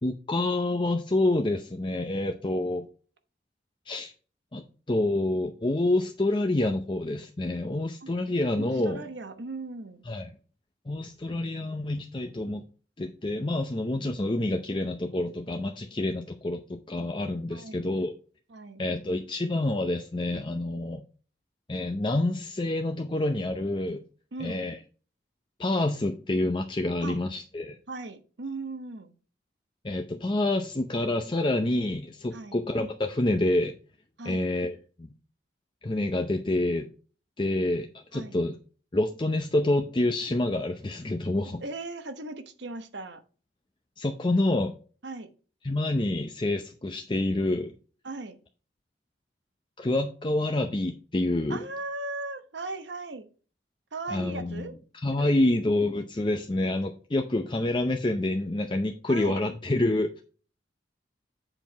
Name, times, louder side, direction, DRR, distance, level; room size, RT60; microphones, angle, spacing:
voice 1, 0.0-2.9 3.9-4.1 4.5-9.0 10.1-10.3 10.9-12.6 13.0-18.1 18.8-21.0 21.7-24.0 24.4-24.8 25.6-27.8 29.8-33.7 34.2-35.1 35.8-36.9 37.4-38.5 38.9-41.6 44.0-44.7 45.6-47.7 49.8-51.6 54.1-54.6 55.0-60.2, left 2 dB, 25° left, 4 dB, 0.5 m, -27 dB
voice 2, 8.5-10.1 17.5-17.9 18.5-18.8 24.3-24.7 27.0-27.2 27.9-29.1 32.3-32.6 34.2-34.5 38.1-38.4 41.4-43.2 45.0-45.3 48.0-48.4 51.5-53.3 53.9-54.7 55.2-55.5 59.1-59.4, right 3 dB, 80° right, 9 dB, 1.0 m, -38 dB
7.8 x 4.6 x 4.5 m, 0.38 s
head